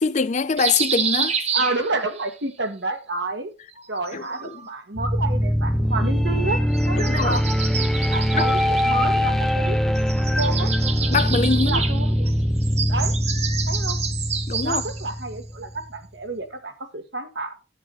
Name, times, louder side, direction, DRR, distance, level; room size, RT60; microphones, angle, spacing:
voice 1, 0.0-1.4 4.1-4.5 6.9-7.4 8.3-8.5 11.1-11.8 14.5-14.8, left 4 dB, 40° left, 0.5 m, -23 dB
sound 1, 0.6-2.3 3.7-4.8 6.7-9.7 10.0-15.1, right 6 dB, 40° right, 1.1 m, -29 dB
voice 2, 1.5-3.5 3.9-7.4 8.1-10.7 11.6-12.3 12.9-13.1 13.7-14.0 14.6-17.5, right 2 dB, 85° right, 1.7 m, -29 dB
sound 2, 5.0-15.9, equal, ahead, 0.7 m, -22 dB
10.0 x 7.8 x 4.0 m
head